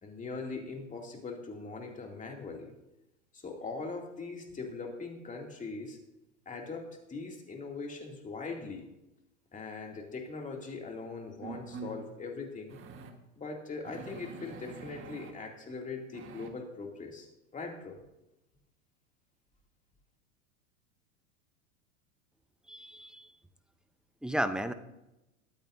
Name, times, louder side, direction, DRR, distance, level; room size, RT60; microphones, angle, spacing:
voice 1, 0.0-2.7 3.3-6.0 6.5-8.9 9.5-12.8 13.4-17.3 17.5-18.0, left 4 dB, 20° left, 1 dB, 2.5 m, -41 dB
sound 1, 10.6-10.7 11.4-12.0 12.7-13.1 13.8-15.3 16.1-16.5, right 4 dB, 30° right, 1.4 m, -45 dB
voice 2, 22.7-23.3 24.2-24.7, equal, ahead, 10 dB, 0.6 m, -33 dB
21.5 x 9.0 x 2.6 m, 0.93 s
hypercardioid pair, 110°, 39 cm